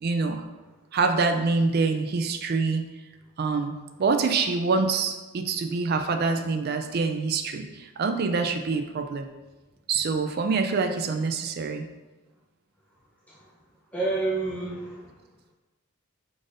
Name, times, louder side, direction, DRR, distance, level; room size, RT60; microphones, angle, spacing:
voice 1, 0.0-0.4 0.9-2.8 3.4-3.7 4.0-9.3 9.9-11.9, right 4 dB, 45° right, 7 dB, 0.3 m, -25 dB
voice 2, 13.9-15.1, right 3 dB, 5° left, -9 dB, 0.6 m, -29 dB
5.0 x 3.9 x 2.5 m, 1.2 s
head